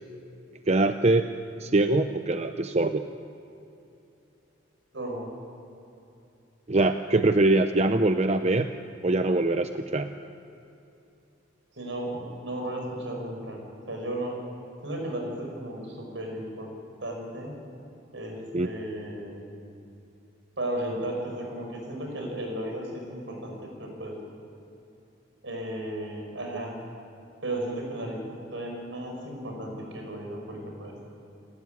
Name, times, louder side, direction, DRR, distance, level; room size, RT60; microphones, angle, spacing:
voice 1, 0.7-1.3 1.6-3.0 6.7-8.7 9.0-10.1 18.5-18.7, right 2 dB, 35° right, 8 dB, 0.7 m, -23 dB
voice 2, 4.9-5.3 11.7-14.4 14.8-16.7 17.0-17.6 18.1-19.4 20.6-24.2 25.4-26.8 27.4-31.0, right 1 dB, 80° right, 1 dB, 6.3 m, -35 dB
29.0 x 12.5 x 9.5 m, 2.8 s
head